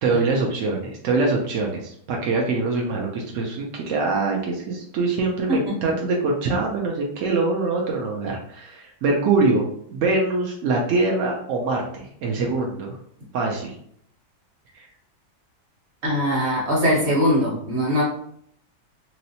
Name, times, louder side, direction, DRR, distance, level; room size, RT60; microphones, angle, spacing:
voice 1, 0.0-9.6 9.9-13.0 13.3-13.8 14.7-14.9, right 3 dB, 75° right, -1 dB, 0.7 m, -24 dB
voice 2, 16.0-18.0, equal, 40° right, -4 dB, 1.3 m, -21 dB
3.0 x 2.9 x 2.7 m, 0.67 s
omnidirectional pair, 1.9 m